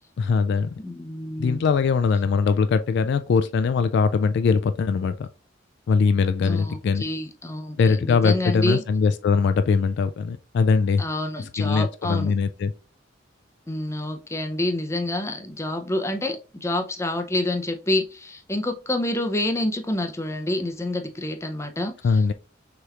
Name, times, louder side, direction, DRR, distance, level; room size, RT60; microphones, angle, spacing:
voice 1, 0.2-0.7 1.4-5.3 5.9-7.0 7.8-11.0 11.6-12.7 22.0-22.3, left 5 dB, 60° left, 0.3 m, -21 dB
voice 2, 0.8-1.7 6.4-8.8 11.0-12.3 13.7-22.3, left 1 dB, 15° left, 0.6 m, -28 dB
6.3 x 3.0 x 2.4 m
head